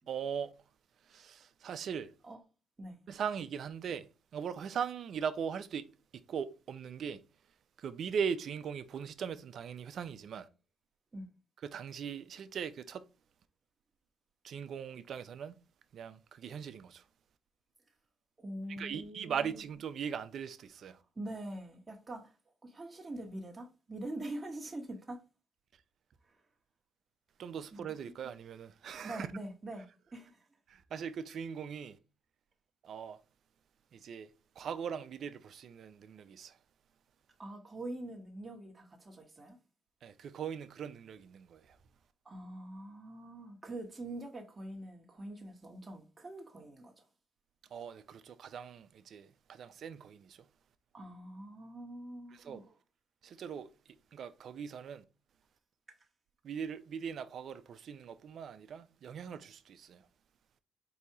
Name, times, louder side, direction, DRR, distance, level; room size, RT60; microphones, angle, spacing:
voice 1, 0.1-0.5 1.1-2.1 3.1-5.9 6.3-7.2 7.8-10.5 11.6-13.0 14.4-15.5 15.9-17.0 18.7-21.0 27.4-29.3 30.7-32.0 32.8-33.2 33.9-34.3 34.6-36.6 40.0-41.8 47.7-50.5 52.3-52.6 53.2-53.7 54.1-55.0 56.4-60.0, right 7 dB, 60° right, 0.5 m, -40 dB
voice 2, 18.4-19.6 21.1-22.4 22.6-25.2 26.3-26.4 27.7-27.9 29.0-30.4 37.4-39.6 42.2-47.1 50.9-52.6, right 1 dB, 20° right, 1.1 m, -44 dB
4.0 x 2.8 x 4.7 m
cardioid pair, 90°, 0 cm